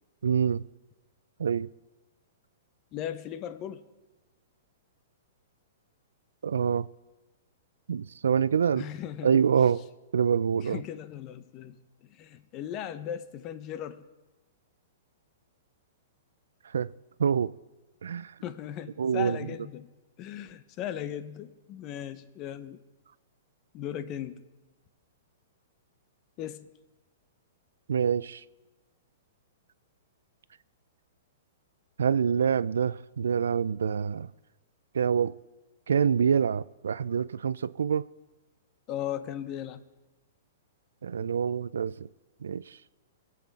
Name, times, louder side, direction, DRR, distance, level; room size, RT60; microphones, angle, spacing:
voice 1, 0.2-0.6 1.4-1.7 6.4-6.9 7.9-8.9 9.2-9.8 10.1-10.8 16.7-16.9 17.2-17.5 18.0-18.3 19.0-19.5 27.9-28.4 32.0-34.3 34.9-35.3 35.9-38.1 41.0-42.1 42.4-42.8, right 7 dB, 90° right, 0.4 m, -26 dB
voice 2, 2.9-3.8 8.7-9.4 10.6-11.8 12.0-14.1 18.4-19.9 20.2-22.8 23.7-24.4 26.4-26.7 38.9-39.8, left 10 dB, 35° left, 0.9 m, -37 dB
22.5 x 8.4 x 4.1 m
hypercardioid pair, 140°, 0 cm